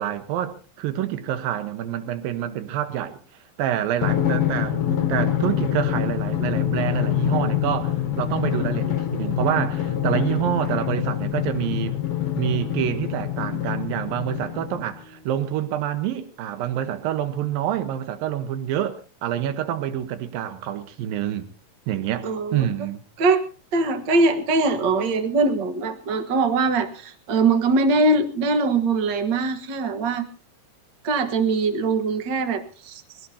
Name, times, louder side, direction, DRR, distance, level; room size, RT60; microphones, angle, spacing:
voice 1, 0.0-3.2 3.6-11.9 12.4-21.5 21.9-23.0, right 11 dB, 80° right, 2.9 m, -27 dB
Drum, 4.0-15.0, left 11 dB, 55° left, 1.7 m, -25 dB
voice 2, 22.2-22.7 23.2-23.4 23.7-30.3 31.0-33.0, right 3 dB, 50° right, 1.3 m, -22 dB
23.5 x 16.5 x 2.8 m
omnidirectional pair, 4.0 m